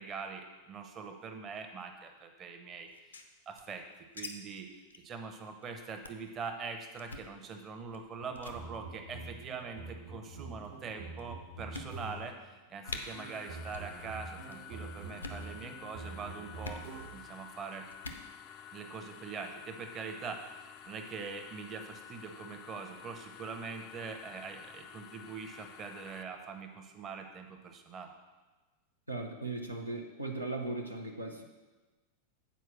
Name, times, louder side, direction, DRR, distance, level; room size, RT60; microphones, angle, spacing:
voice 1, 0.0-2.9 3.5-3.8 4.1-4.7 5.0-12.4 12.7-16.8 17.1-17.9 18.7-28.1, right 5 dB, 25° right, 4 dB, 0.9 m, -43 dB
sound 1, 2.9-4.3 4.5-4.6 4.9-5.1 5.4-5.6 6.0-6.3 7.0-7.3 7.9-8.1 8.4-8.6 9.5-9.9 10.6-10.7 11.2-11.3 11.7-12.3 12.5-12.6 12.9-13.0 13.7-13.9 14.2-14.6 15.1-15.5 16.6-16.8 17.9-18.3, left 3 dB, 75° left, 0.7 m, -44 dB
sound 2, 8.2-12.5 13.1-17.4, right 3 dB, 65° right, 1.3 m, -46 dB
sound 3, 12.8-26.2, left 9 dB, 40° left, 0.4 m, -51 dB
voice 2, 29.1-31.4, right 2 dB, 85° right, 2 dB, 0.8 m, -38 dB
8.2 x 4.6 x 6.2 m, 1.2 s
figure-of-eight pair, 90°, 0 cm